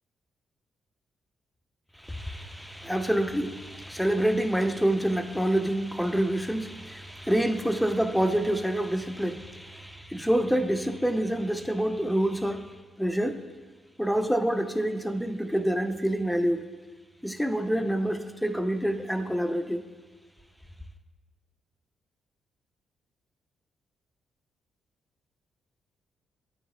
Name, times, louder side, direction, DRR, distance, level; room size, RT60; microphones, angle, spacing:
voice 1, 2.0-12.7 13.0-13.4 14.0-16.6 17.2-19.8, right 1 dB, ahead, 0.4 m, -27 dB
8.9 x 3.6 x 3.1 m
hypercardioid pair, 40°, 0 cm